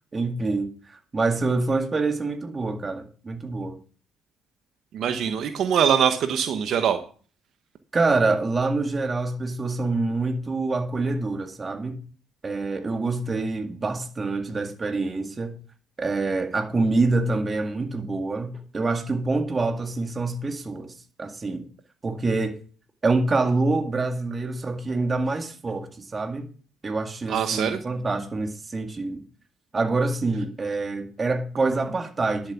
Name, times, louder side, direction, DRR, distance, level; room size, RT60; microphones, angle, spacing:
voice 1, 0.1-3.8 7.9-12.0 12.4-15.6 16.0-21.7 22.0-22.6 23.0-26.5 26.8-29.2 29.7-32.5, right 3 dB, 25° right, 1.9 m, -26 dB
voice 2, 4.9-7.0 27.3-27.8, right 8 dB, 60° right, 1.1 m, -23 dB
11.0 x 7.4 x 7.0 m
cardioid pair, 110°, 0 cm